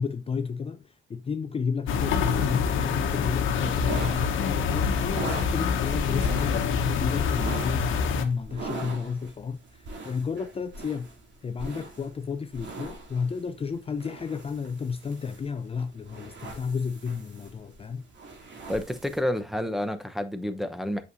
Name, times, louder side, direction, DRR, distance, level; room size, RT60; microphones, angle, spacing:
voice 1, 0.0-11.1 11.4-18.0, left 5 dB, 30° left, 0.5 m, -32 dB
sound 1, 1.9-8.2, left 6 dB, 80° left, 1.1 m, -26 dB
sound 2, 3.7-19.2, right 3 dB, 65° right, 2.9 m, -41 dB
voice 2, 18.7-21.0, left 1 dB, ahead, 0.9 m, -29 dB
8.4 x 6.3 x 2.6 m
cardioid pair, 90°, 20 cm